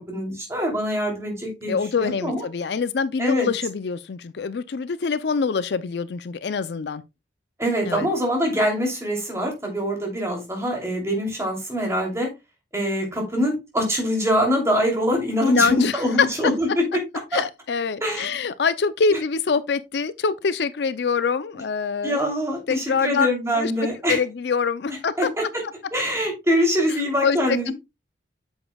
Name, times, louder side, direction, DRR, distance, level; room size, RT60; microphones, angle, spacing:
voice 1, 0.1-2.5 3.2-3.5 7.6-12.3 12.7-16.8 17.3-17.4 18.0-18.3 19.1-19.2 22.0-24.2 25.2-25.5 25.9-27.7, equal, 15° right, 2.9 m, -24 dB
voice 2, 1.7-7.0 7.9-8.1 15.4-16.3 17.3-22.3 22.7-23.3 23.6-23.7 24.1-25.3 27.2-27.7, left 5 dB, 65° left, 0.4 m, -24 dB
8.6 x 7.1 x 2.3 m
head